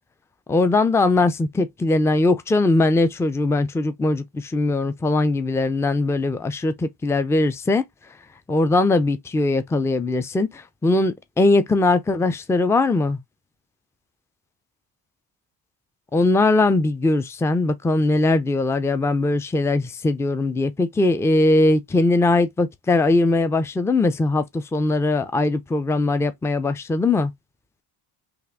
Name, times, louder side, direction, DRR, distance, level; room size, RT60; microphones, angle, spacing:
voice 1, 0.5-7.8 8.5-13.2 16.1-27.3, left 2 dB, 5° left, 0.4 m, -20 dB
3.5 x 2.6 x 3.4 m
cardioid pair, 75°, 47 cm